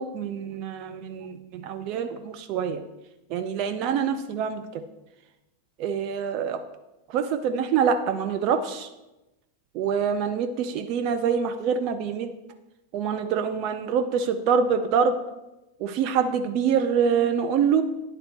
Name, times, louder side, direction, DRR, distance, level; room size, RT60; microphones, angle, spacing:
voice 1, 0.0-2.8 3.3-4.8 5.8-6.6 7.1-8.9 9.7-12.3 12.9-15.1 15.8-17.8, right 7 dB, 40° right, 7 dB, 0.5 m, -25 dB
10.0 x 3.9 x 4.2 m, 0.99 s
figure-of-eight pair, 90°, 0 cm